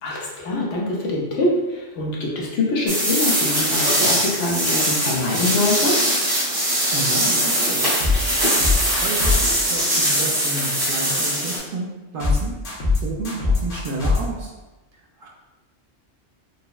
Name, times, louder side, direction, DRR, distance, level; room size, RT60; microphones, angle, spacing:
voice 1, 0.0-6.0, left 2 dB, 90° left, -3 dB, 1.1 m, -24 dB
sound 1, 2.9-11.6, right 1 dB, 85° right, 1.7 m, -21 dB
voice 2, 6.9-7.9 8.9-11.9 12.1-12.5 13.0-14.5 14.9-15.3, right 2 dB, 60° right, -2 dB, 0.6 m, -31 dB
sound 2, 7.8-8.2 8.4-9.4 12.2-12.4 12.6-13.0 13.2-14.2, left 4 dB, 70° left, 1.2 m, -21 dB
5.3 x 2.0 x 2.3 m, 1.1 s
omnidirectional pair, 1.2 m